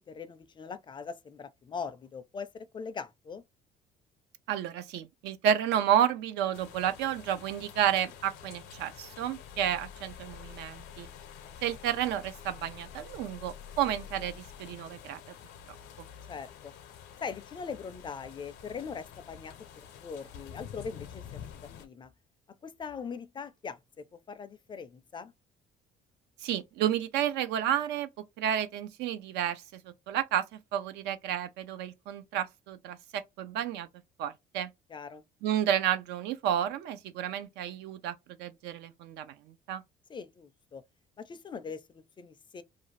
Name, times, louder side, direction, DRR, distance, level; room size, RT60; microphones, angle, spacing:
voice 1, 0.0-3.4 16.3-16.7 17.2-19.5 20.0-21.2 21.8-22.1 22.6-23.8 24.3-25.3 34.9-35.2 40.1-40.8 41.2-42.6, left 5 dB, 30° left, 0.4 m, -41 dB
voice 2, 4.5-11.1 11.6-15.2 26.4-28.1 28.4-33.9 34.2-34.7 35.4-39.8, right 10 dB, 85° right, 0.5 m, -31 dB
sound 1, 6.5-21.9, left 8 dB, 90° left, 0.6 m, -48 dB
2.5 x 2.3 x 3.1 m
cardioid pair, 110°, 17 cm